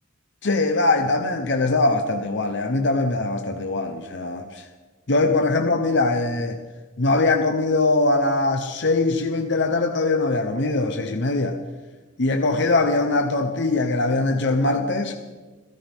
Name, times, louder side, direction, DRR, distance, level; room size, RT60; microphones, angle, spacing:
voice 1, 0.4-4.6 5.1-6.6 7.0-11.6 12.2-15.1, left 2 dB, 60° left, 5 dB, 1.0 m, -22 dB
28.0 x 13.0 x 3.7 m, 1.3 s
head